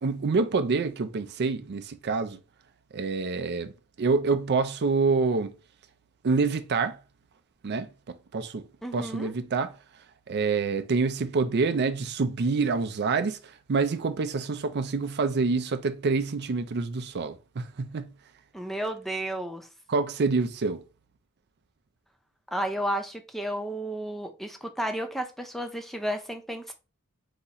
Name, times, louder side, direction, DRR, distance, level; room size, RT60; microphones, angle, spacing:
voice 1, 0.0-2.4 2.9-3.7 4.0-5.5 6.2-7.0 7.6-8.6 8.9-9.7 10.3-18.1 19.9-20.8, right 4 dB, 50° right, 0.5 m, -27 dB
voice 2, 8.8-9.3 18.5-19.7 22.5-26.7, right 1 dB, ahead, 0.5 m, -32 dB
3.9 x 2.8 x 4.1 m
head